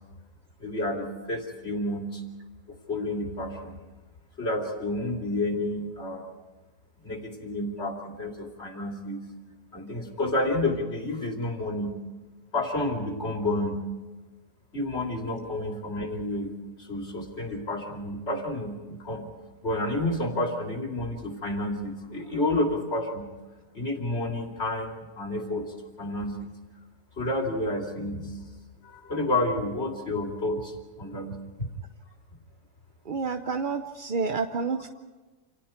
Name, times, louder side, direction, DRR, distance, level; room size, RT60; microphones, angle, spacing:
voice 1, 0.6-2.2 2.7-3.8 4.4-6.2 7.0-9.3 9.7-12.0 12.5-13.9 14.7-19.3 19.6-23.3 23.7-26.5 27.2-28.5 28.8-31.7, left 1 dB, 40° left, 1 dB, 3.3 m, -30 dB
voice 2, 33.1-34.9, right 4 dB, 45° right, 6 dB, 0.7 m, -29 dB
28.5 x 27.5 x 4.4 m, 1.3 s
omnidirectional pair, 1.7 m